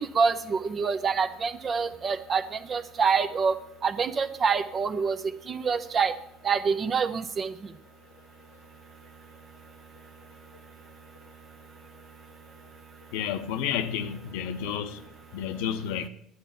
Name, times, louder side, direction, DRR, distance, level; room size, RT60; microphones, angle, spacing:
voice 1, 0.0-2.4 2.7-3.5 3.8-5.2 5.5-6.1 6.4-7.5, right 5 dB, 40° right, 0.9 m, -26 dB
voice 2, 13.1-15.0 15.3-16.1, left 9 dB, 70° left, 0.7 m, -31 dB
11.5 x 7.9 x 5.8 m
hypercardioid pair, 65°, 0 cm